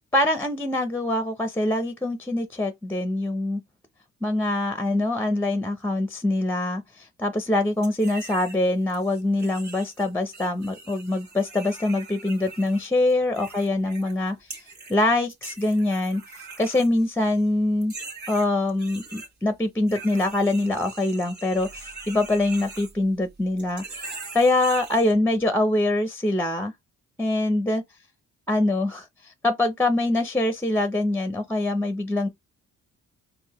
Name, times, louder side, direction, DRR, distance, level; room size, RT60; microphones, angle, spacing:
voice 1, 0.1-3.6 4.2-14.6 14.9-16.2 16.6-17.9 18.3-26.7 27.2-27.8 28.5-32.3, left 2 dB, 5° left, 0.5 m, -24 dB
sound 1, 7.8-8.6 8.9-14.2 14.5-15.0 15.3-17.4 17.8-19.3 19.9-23.3 23.6-25.1, right 3 dB, 70° right, 1.8 m, -42 dB
4.7 x 2.6 x 2.9 m
cardioid pair, 90°, 30 cm